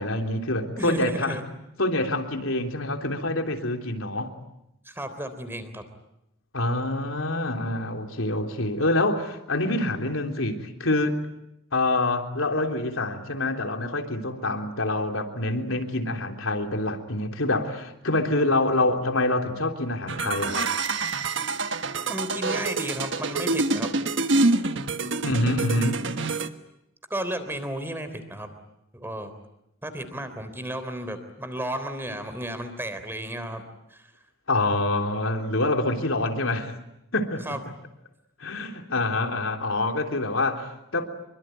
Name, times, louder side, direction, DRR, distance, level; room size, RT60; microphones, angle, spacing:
voice 1, 0.0-1.4 1.8-4.3 6.5-11.2 11.7-20.7 25.2-26.1 34.5-36.7 37.1-37.5 38.4-41.1, left 2 dB, 85° left, 4 dB, 3.5 m, -26 dB
voice 2, 0.7-1.7 4.8-5.8 22.1-23.9 27.1-28.5 28.9-29.3 29.8-33.6 33.9-34.1 37.4-37.6, right 1 dB, 10° right, 10 dB, 3.5 m, -33 dB
sound 1, 20.1-26.5, right 3 dB, 60° right, 1.5 m, -26 dB
27.0 x 23.5 x 9.3 m, 0.85 s
head